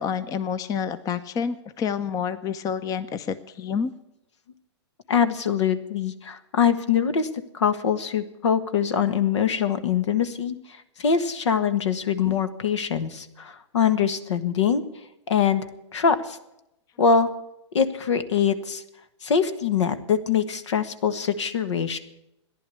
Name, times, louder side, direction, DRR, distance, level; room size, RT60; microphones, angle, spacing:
voice 1, 0.0-3.9, left 7 dB, 25° left, 13 dB, 0.7 m, -28 dB
voice 2, 5.1-7.3 7.5-14.8 15.3-15.6 15.9-16.4 17.0-17.3 17.7-18.8 19.2-22.0, left 7 dB, 75° left, 12 dB, 1.5 m, -23 dB
14.5 x 11.0 x 8.5 m, 0.86 s
hypercardioid pair, 125°, 15 cm